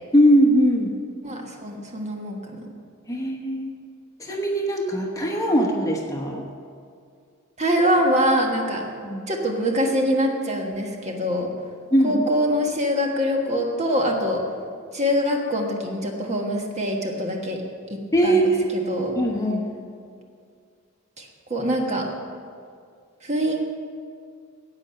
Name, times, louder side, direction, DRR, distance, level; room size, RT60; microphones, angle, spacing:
voice 1, 0.1-0.9 3.1-3.7 4.2-6.4 9.0-9.3 11.9-12.2 18.1-18.7 19.2-19.7, equal, 15° left, 0 dB, 1.1 m, -20 dB
voice 2, 1.2-2.4 7.6-8.8 9.3-11.5 12.0-14.4 14.9-17.6 17.9-19.1 21.2-22.1 23.2-23.6, equal, 30° right, 1 dB, 1.4 m, -24 dB
10.5 x 8.4 x 7.6 m, 2.2 s
head